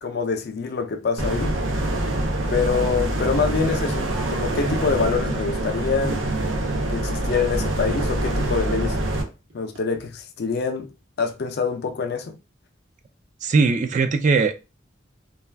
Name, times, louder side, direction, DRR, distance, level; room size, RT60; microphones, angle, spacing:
voice 1, 0.0-1.6 2.5-6.2 6.9-9.0 9.5-10.9 11.2-12.4, left 5 dB, 55° left, 0.4 m, -25 dB
sound 1, 1.2-9.2, right 1 dB, 90° right, 0.6 m, -25 dB
sound 2, 4.9-5.0 6.0-6.1 6.5-6.7 7.0-8.7 9.5-9.8, equal, 70° right, 0.9 m, -42 dB
voice 2, 13.4-14.6, right 4 dB, 40° right, 0.3 m, -20 dB
2.3 x 2.2 x 3.3 m
head